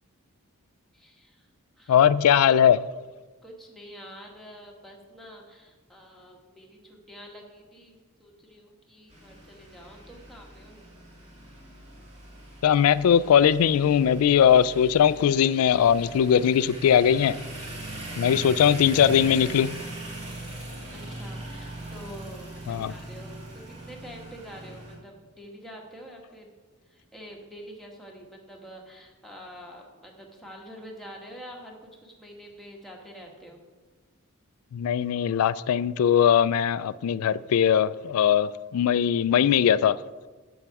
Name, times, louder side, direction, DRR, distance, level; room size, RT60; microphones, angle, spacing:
voice 1, 0.9-1.5 1.8-2.0 3.4-10.8 20.9-26.5 26.9-33.6, equal, ahead, 1.3 m, -46 dB
voice 2, 1.9-2.9 12.6-17.4 18.2-19.8 22.7-22.9 34.7-40.0, left 8 dB, 75° left, 0.3 m, -20 dB
sound 1, 9.1-25.0, right 1 dB, 30° right, 2.1 m, -40 dB
7.7 x 7.1 x 4.7 m
head